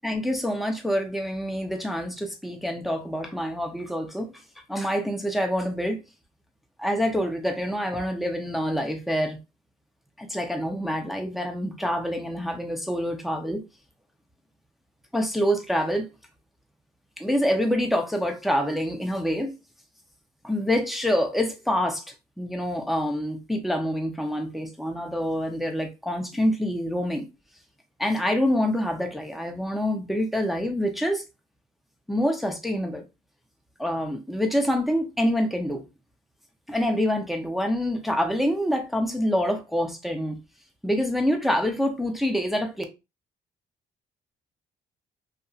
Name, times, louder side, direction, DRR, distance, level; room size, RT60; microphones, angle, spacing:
voice 1, 0.0-4.3 4.7-6.0 6.8-9.4 10.2-13.6 15.1-16.1 17.2-19.5 20.4-22.0 22.4-27.3 28.0-31.2 32.1-33.0 33.8-35.8 36.7-40.4 40.8-42.8, equal, ahead, 0.6 m, -26 dB
2.7 x 2.4 x 2.4 m
cardioid pair, 90°, 20 cm